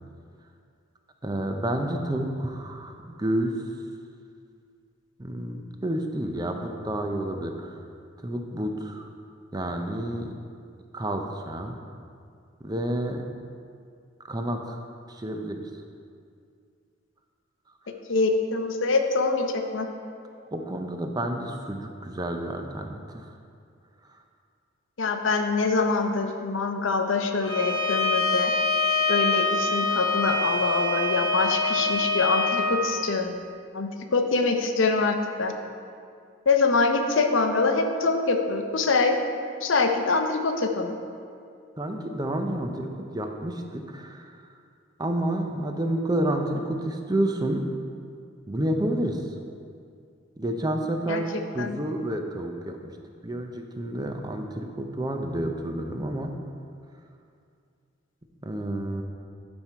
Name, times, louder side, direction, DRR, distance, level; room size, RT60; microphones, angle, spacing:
voice 1, 1.2-3.6 5.2-7.8 8.2-9.1 9.5-10.3 10.9-11.8 12.6-13.2 14.2-14.8 15.1-15.6 20.5-23.3 41.8-44.4 45.0-47.7 48.5-49.2 50.4-52.9 53.2-56.3 58.4-59.0, right 1 dB, 20° right, 4 dB, 0.5 m, -29 dB
voice 2, 18.1-19.9 25.0-28.5 29.1-33.4 33.7-35.5 36.5-39.1 39.6-41.0 51.1-51.2 51.6-51.8, left 3 dB, 70° left, 5 dB, 0.7 m, -24 dB
Bowed string instrument, 27.4-32.7, left 3 dB, 20° left, 0.8 m, -25 dB
12.0 x 4.4 x 4.5 m, 2.3 s
head